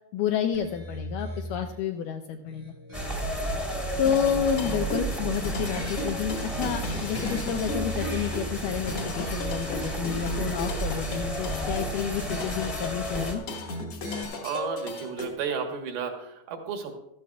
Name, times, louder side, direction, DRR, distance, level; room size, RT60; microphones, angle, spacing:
voice 1, 0.1-2.7 4.0-13.4, left 9 dB, 85° left, 5 dB, 1.8 m, -30 dB
sound 1, 0.5-1.8 2.4-3.5 4.0-5.1 6.6-8.7 9.2-10.4 10.9-12.0 13.5-14.2, left 1 dB, 20° right, 0.7 m, -41 dB
sound 2, 2.9-13.3, right 1 dB, 20° left, 1.0 m, -32 dB
sound 3, 4.0-15.3, left 2 dB, 55° left, 1.8 m, -35 dB
voice 2, 14.4-16.9, right 6 dB, 75° right, 4 dB, 3.0 m, -32 dB
15.0 x 12.5 x 2.3 m, 0.85 s
omnidirectional pair, 4.4 m